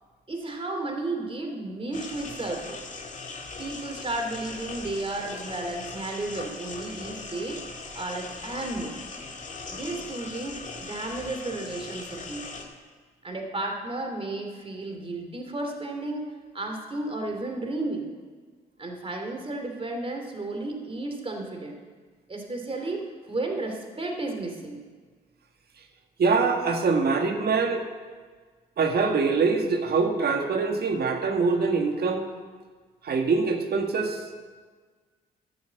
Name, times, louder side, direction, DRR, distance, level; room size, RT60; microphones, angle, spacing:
voice 1, 0.3-2.8 3.6-7.6 7.9-8.9 9.7-12.6 13.2-18.1 18.8-21.8 22.3-24.8, right 2 dB, 25° right, 3 dB, 2.8 m, -33 dB
sound 1, 1.9-12.6, left 3 dB, 40° left, 2.1 m, -40 dB
voice 2, 26.2-27.8 28.8-32.2 33.0-34.2, right 4 dB, 55° right, 4 dB, 1.7 m, -24 dB
11.5 x 7.1 x 7.7 m, 1.5 s
hypercardioid pair, 50°, 20 cm